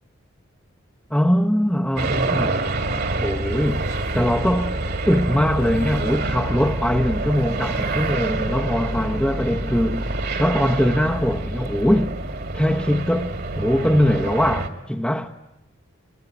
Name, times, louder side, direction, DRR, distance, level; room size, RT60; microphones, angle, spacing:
voice 1, 1.1-2.6 3.2-3.9 4.1-4.8 5.1-10.0 10.4-12.1 12.5-15.3, equal, 5° left, 0.9 m, -21 dB
sound 1, 2.0-14.7, right 2 dB, 50° right, 2.4 m, -26 dB
24.5 x 22.5 x 9.7 m
head